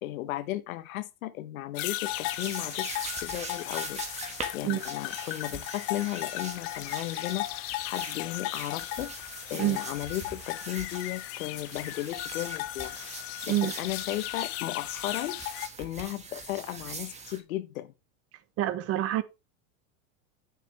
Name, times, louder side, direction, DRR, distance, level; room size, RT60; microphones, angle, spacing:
voice 1, 0.0-4.0 4.5-9.1 9.5-13.0 13.5-15.4 15.8-17.9, left 15 dB, 85° left, 1.1 m, -35 dB
sound 1, 1.7-15.7, left 17 dB, 35° left, 0.5 m, -36 dB
sound 2, 2.1-17.4, right 4 dB, 15° right, 1.6 m, -43 dB
voice 2, 18.6-19.2, right 13 dB, 35° right, 0.9 m, -27 dB
9.3 x 6.9 x 3.3 m
supercardioid pair, 145°, 41 cm